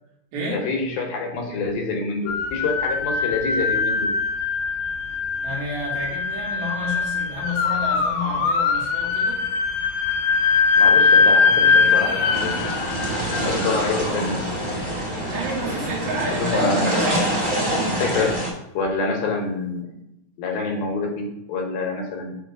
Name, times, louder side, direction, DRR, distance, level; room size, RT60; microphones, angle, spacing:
voice 1, 0.5-4.1 10.8-12.5 13.4-14.5 16.3-17.0 18.0-18.4 18.7-20.0 20.4-22.3, left 3 dB, 75° left, 1 dB, 2.7 m, -26 dB
sound 1, 2.3-15.3, left 5 dB, 90° left, 2.5 m, -22 dB
voice 2, 5.4-9.4 15.3-17.4, equal, 75° right, -3 dB, 3.5 m, -30 dB
sound 2, 12.3-18.5, right 1 dB, 15° right, 1.2 m, -25 dB
7.0 x 3.1 x 5.9 m, 0.86 s
omnidirectional pair, 4.4 m